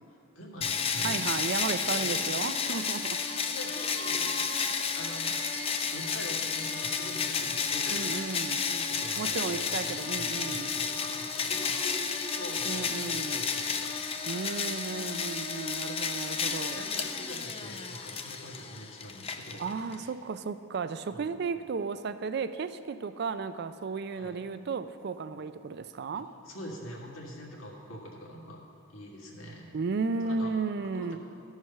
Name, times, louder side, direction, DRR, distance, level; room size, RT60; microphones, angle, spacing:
voice 1, 0.3-1.4 1.9-2.2 3.4-4.3 4.6-5.6 5.9-8.2 8.7-13.9 16.7-20.1 21.1-21.3 24.1-24.3 26.4-28.6 28.9-29.7 30.2-30.5 30.9-31.2, equal, 75° left, -2 dB, 1.6 m, -44 dB
sound 1, 0.6-20.0, left 5 dB, 30° left, 0.4 m, -32 dB
voice 2, 1.0-3.2 7.9-8.6 9.2-10.7 12.7-13.4 14.3-16.8 19.6-26.3 29.7-31.2, right 4 dB, 50° right, 12 dB, 0.4 m, -34 dB
sound 2, 2.7-2.9 3.3-3.4 3.7-7.1, right 4 dB, 75° right, 1.2 m, -46 dB
14.0 x 4.8 x 5.5 m, 2.5 s
head